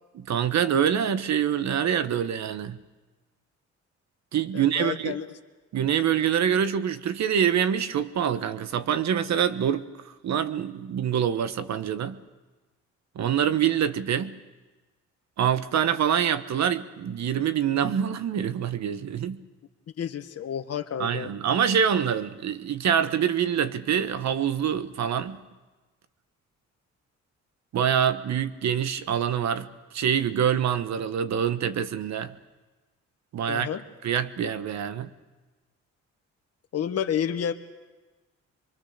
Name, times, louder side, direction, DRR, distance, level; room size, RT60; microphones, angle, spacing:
voice 1, 0.1-2.8 4.3-5.2 5.7-12.2 13.1-14.4 15.4-19.4 21.0-25.4 27.7-29.7 29.9-32.4 33.3-33.7 34.0-35.1, right 8 dB, 65° right, 12 dB, 1.2 m, -25 dB
voice 2, 4.5-5.3 20.0-21.3 33.5-33.8 36.7-37.5, left 9 dB, 55° left, 7 dB, 1.5 m, -30 dB
24.5 x 23.5 x 6.7 m, 1.2 s
cardioid pair, 90°, 30 cm